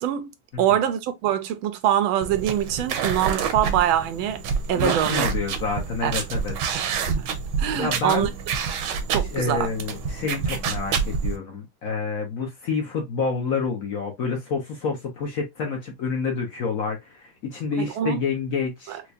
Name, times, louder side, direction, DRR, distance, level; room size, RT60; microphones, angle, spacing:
voice 1, 0.0-4.4 4.7-5.3 6.0-6.1 7.1-7.3 7.6-8.3 9.1-9.7 17.8-18.2 18.9-19.0, right 11 dB, 90° right, 1.4 m, -24 dB
sound 1, 2.2-11.4, right 6 dB, 70° right, 1.2 m, -28 dB
voice 2, 4.7-6.5 7.8-8.3 9.3-19.0, left 5 dB, 60° left, 1.0 m, -28 dB
4.6 x 2.2 x 2.5 m
omnidirectional pair, 2.2 m